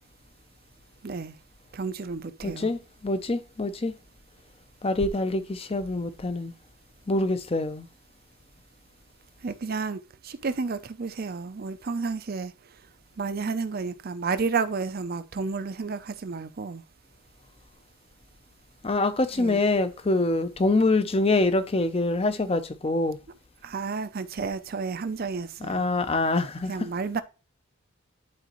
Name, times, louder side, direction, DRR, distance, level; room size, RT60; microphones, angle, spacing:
voice 1, 1.0-1.4 1.7-2.7 9.4-12.5 13.2-16.8 19.4-19.6 23.6-25.9 26.7-27.2, right 4 dB, 45° right, 0.5 m, -31 dB
voice 2, 2.4-3.9 4.8-6.5 7.1-7.9 18.8-23.2 25.6-26.9, left 2 dB, 25° left, 0.6 m, -25 dB
10.5 x 4.0 x 3.0 m
head